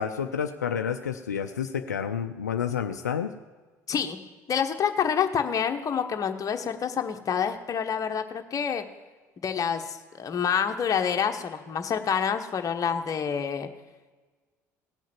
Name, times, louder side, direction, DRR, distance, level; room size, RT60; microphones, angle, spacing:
voice 1, 0.0-3.3, left 7 dB, 90° left, 7 dB, 0.4 m, -29 dB
voice 2, 3.9-4.2 4.5-8.8 9.4-13.7, left 7 dB, 40° left, 6 dB, 1.2 m, -27 dB
17.5 x 6.4 x 7.3 m, 1.3 s
hypercardioid pair, 60°, 9 cm